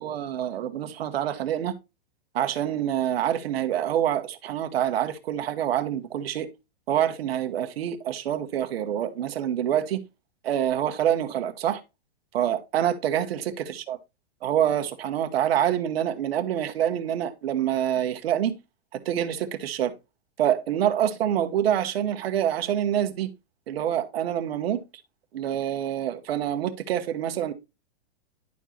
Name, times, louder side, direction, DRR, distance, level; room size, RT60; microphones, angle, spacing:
voice 1, 0.0-1.7 2.3-6.5 6.9-10.0 10.4-11.8 12.3-14.0 14.4-18.5 19.0-19.9 20.4-23.3 23.7-24.8 25.3-27.5, right 10 dB, 65° right, 1.3 m, -26 dB
11.0 x 4.5 x 2.8 m
supercardioid pair, 165°, 32 cm